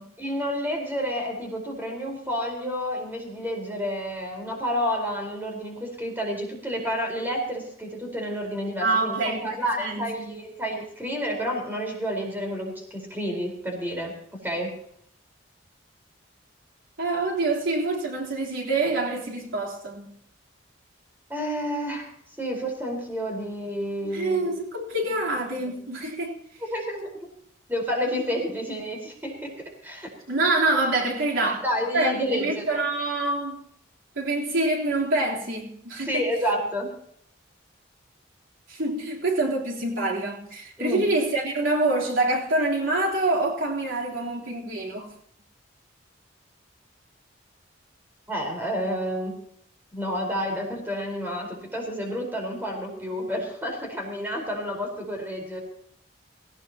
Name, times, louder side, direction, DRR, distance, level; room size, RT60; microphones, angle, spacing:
voice 1, 0.2-14.7 21.3-22.1 22.4-24.5 26.6-27.1 27.7-30.1 31.6-32.6 36.1-36.9 40.8-41.0 48.3-49.4 49.9-55.6, equal, 10° right, 4.5 m, -30 dB
voice 2, 8.8-10.3 17.0-20.1 24.0-26.4 30.3-31.6 31.9-33.6 34.2-36.3 38.7-45.1, right 2 dB, 80° right, 3.7 m, -26 dB
19.5 x 18.5 x 3.0 m
head